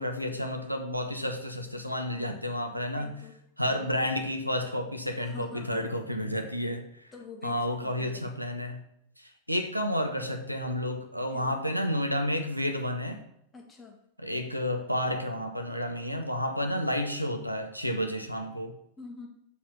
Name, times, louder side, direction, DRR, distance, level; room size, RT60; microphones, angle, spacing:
voice 1, 0.0-3.2 3.6-7.1 7.4-8.8 9.2-13.2 14.2-18.7, equal, 90° right, 6 dB, 0.8 m, -31 dB
voice 2, 2.9-3.3 3.6-4.2 5.2-6.0 6.6-6.7 7.1-8.4 11.3-11.6 13.5-14.0 18.2-18.4 19.0-19.3, left 4 dB, 15° left, 0 dB, 1.6 m, -47 dB
7.1 x 4.3 x 6.0 m, 0.75 s
figure-of-eight pair, 90°, 0 cm